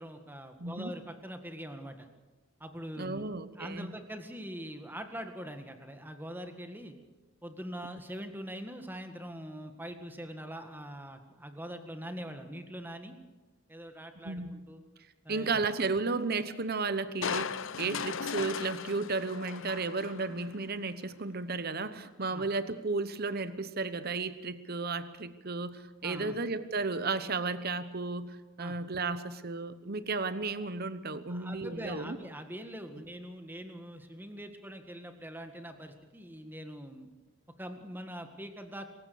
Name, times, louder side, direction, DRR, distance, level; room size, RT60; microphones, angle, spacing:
voice 1, 0.0-2.1 2.6-6.9 7.4-13.2 13.7-14.8 15.2-15.6 17.9-18.0 22.3-22.5 26.0-26.4 28.6-28.8 31.3-37.1 37.6-38.9, equal, 10° right, 6 dB, 1.8 m, -43 dB
voice 2, 0.6-0.9 3.0-3.9 14.2-14.6 15.3-32.2, right 3 dB, 45° right, 13 dB, 1.0 m, -34 dB
Crushing, 17.2-20.6 21.0-21.1, left 6 dB, 60° left, 0.6 m, -37 dB
26.5 x 15.5 x 7.0 m, 1.2 s
head